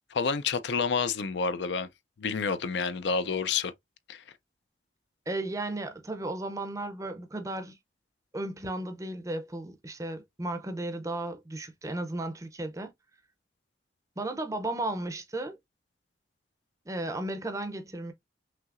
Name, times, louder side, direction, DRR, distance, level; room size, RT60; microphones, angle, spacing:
voice 1, 0.1-1.9 2.2-3.7 4.1-4.2, left 5 dB, 75° left, 0.5 m, -29 dB
voice 2, 5.3-7.8 8.3-12.9 14.2-15.6 16.9-18.1, right 2 dB, 15° right, 0.5 m, -34 dB
5.8 x 2.8 x 2.5 m
head